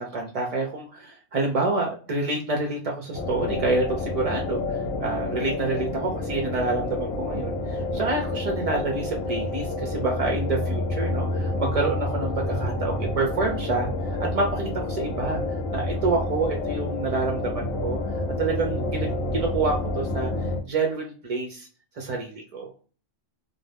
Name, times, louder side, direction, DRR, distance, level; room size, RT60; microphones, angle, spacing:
voice 1, 0.0-13.9 14.2-15.4 15.7-20.3 20.7-21.7 22.0-22.7, right 3 dB, 60° right, 1 dB, 0.4 m, -28 dB
sound 1, 3.1-20.6, left 2 dB, 85° left, 1.0 m, -29 dB
2.5 x 2.0 x 3.2 m, 0.38 s
omnidirectional pair, 1.3 m